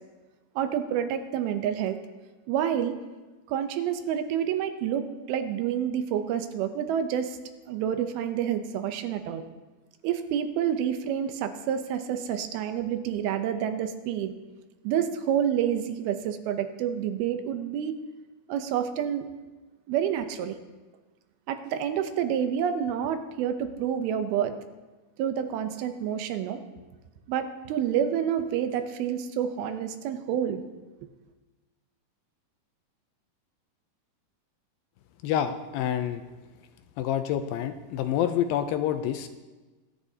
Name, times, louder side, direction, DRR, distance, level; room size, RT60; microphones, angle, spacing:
voice 1, 0.6-2.0 2.5-3.0 3.5-7.4 7.7-9.4 10.0-14.3 14.8-18.0 18.5-19.3 19.9-20.6 21.5-24.6 25.2-26.6 27.3-30.6, right 9 dB, 80° right, 8 dB, 2.6 m, -28 dB
voice 2, 35.2-36.2 37.0-39.3, left 10 dB, 80° left, 9 dB, 2.2 m, -27 dB
22.5 x 10.0 x 2.8 m, 1.2 s
omnidirectional pair, 4.4 m